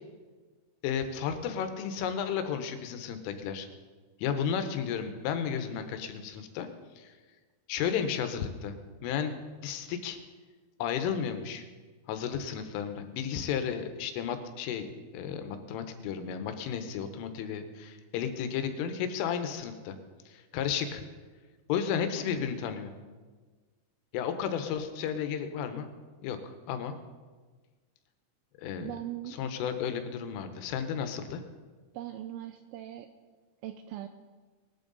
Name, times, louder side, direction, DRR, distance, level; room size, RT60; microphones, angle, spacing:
voice 1, 0.8-3.7 4.2-6.7 7.0-7.1 7.7-10.2 10.8-11.7 12.1-20.0 20.3-21.0 21.7-22.9 24.1-25.9 26.2-27.0 28.6-28.9 29.3-31.4, left 7 dB, 80° left, 8 dB, 3.5 m, -33 dB
voice 2, 28.8-29.4 31.9-33.1 33.6-34.1, right 13 dB, 90° right, 7 dB, 2.6 m, -40 dB
20.5 x 12.5 x 4.0 m, 1.4 s
omnidirectional pair, 5.9 m